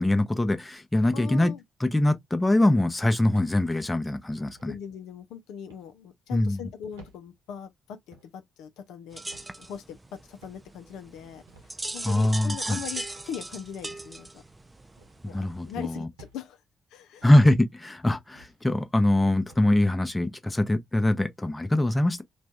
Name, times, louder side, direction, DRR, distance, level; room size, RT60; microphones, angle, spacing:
voice 1, 0.0-1.5 1.8-4.7 6.3-6.6 12.0-12.8 15.2-16.1 17.2-22.2, left 1 dB, 15° left, 0.7 m, -23 dB
voice 2, 1.1-1.6 4.7-9.2 9.6-10.0 10.3-14.4 15.2-16.6 16.9-17.2, left 8 dB, 70° left, 0.4 m, -40 dB
sound 1, 3.3-3.8 4.5-4.7 5.7-5.9 6.9-7.2 8.1-8.4 9.3-9.6 10.4-10.7 11.5-11.7 12.7-12.9 13.8-14.0 15.0-15.2 16.2-16.4 17.2-17.4 18.3-18.6 19.5-19.7, right 2 dB, 85° right, 0.9 m, -53 dB
sound 2, 9.1-16.0, right 2 dB, 20° right, 0.5 m, -39 dB
2.6 x 2.2 x 3.4 m
hypercardioid pair, 45°, 0 cm